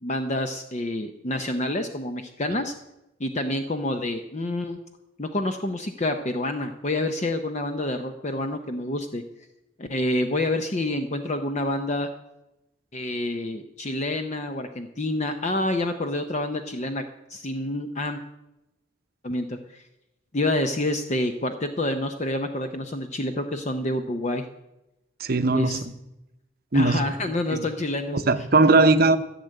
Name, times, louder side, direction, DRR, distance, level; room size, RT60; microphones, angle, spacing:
voice 1, 0.0-2.7 3.2-4.8 5.2-9.2 9.8-12.1 12.9-17.0 17.3-18.2 19.2-19.8 20.3-24.4 25.5-25.8 26.7-28.2, left 1 dB, 35° left, 7 dB, 0.7 m, -28 dB
voice 2, 25.2-25.9 26.7-27.1 27.5-27.6 28.1-29.2, right 3 dB, 45° right, 10 dB, 0.8 m, -19 dB
14.5 x 6.6 x 9.2 m, 0.92 s
head